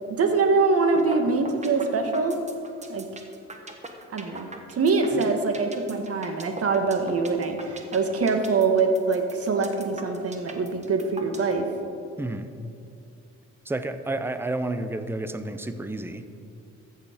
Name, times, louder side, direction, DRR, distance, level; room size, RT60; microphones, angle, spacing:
voice 1, 0.1-2.4 2.9-3.0 4.1-11.7, right 4 dB, 50° right, 5 dB, 1.4 m, -24 dB
sound 1, 0.9-1.2 1.5-11.5, right 2 dB, 25° right, 1.3 m, -40 dB
voice 2, 12.2-12.5 13.7-16.2, right 2 dB, 10° right, 10 dB, 0.6 m, -30 dB
14.0 x 6.9 x 5.1 m, 2.6 s
cardioid pair, 90°, 30 cm